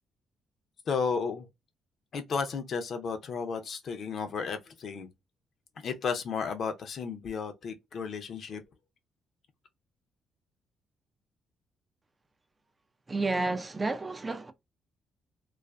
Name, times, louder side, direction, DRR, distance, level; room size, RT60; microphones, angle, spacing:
voice 1, 0.9-1.5 2.1-5.1 5.8-8.6, left 5 dB, 55° left, 0.5 m, -33 dB
voice 2, 13.1-14.5, right 3 dB, 25° right, 0.3 m, -30 dB
2.4 x 2.3 x 2.2 m
cardioid pair, 90°, 0 cm